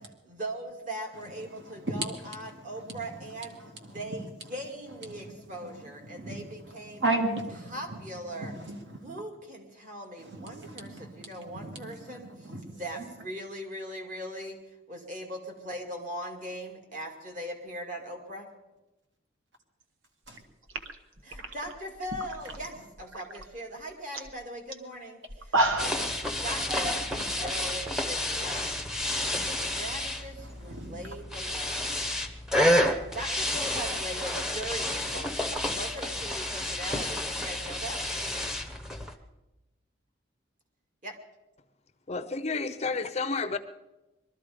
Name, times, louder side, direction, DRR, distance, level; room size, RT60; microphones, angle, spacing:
voice 1, 0.3-3.6 3.9-7.0 7.7-8.5 9.0-12.3 12.7-14.6 14.9-18.5 21.2-25.2 25.8-27.0 27.4-28.7 29.5-32.2 33.1-38.0 41.0-41.1, right 1 dB, 40° right, 2 dB, 2.3 m, -40 dB
voice 2, 2.5-3.0 3.9-4.1 5.1-5.3 5.6-5.7 6.0-6.5 6.9-8.0 8.4-9.1 10.2-12.8 30.4-31.0, right 2 dB, 60° right, 3 dB, 2.3 m, -35 dB
sound 1, 20.3-20.4 20.7-22.7 23.0-23.4 23.8-23.9 24.1-24.3 24.7-24.8 25.3-26.1, right 2 dB, 90° right, 1.1 m, -30 dB
sound 2, 25.8-39.2, left 1 dB, 5° right, 0.9 m, -30 dB
voice 3, 42.1-43.6, left 4 dB, 30° left, 11 dB, 0.6 m, -31 dB
21.5 x 13.0 x 5.1 m, 1.0 s
head